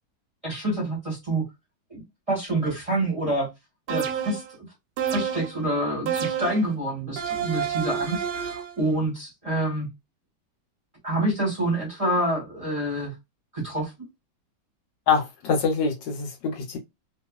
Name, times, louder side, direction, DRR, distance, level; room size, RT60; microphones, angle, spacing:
voice 1, 0.4-1.5 1.9-3.5 3.9-4.7 5.1-9.9 11.0-13.1 13.5-13.9, right 1 dB, 20° right, 1.2 m, -27 dB
sound 1, 3.9-4.5 5.0-5.6 6.1-6.7 7.2-8.8, right 8 dB, 70° right, 1.1 m, -29 dB
voice 2, 15.1-16.8, left 5 dB, 70° left, 1.4 m, -24 dB
2.9 x 2.6 x 2.3 m
omnidirectional pair, 2.1 m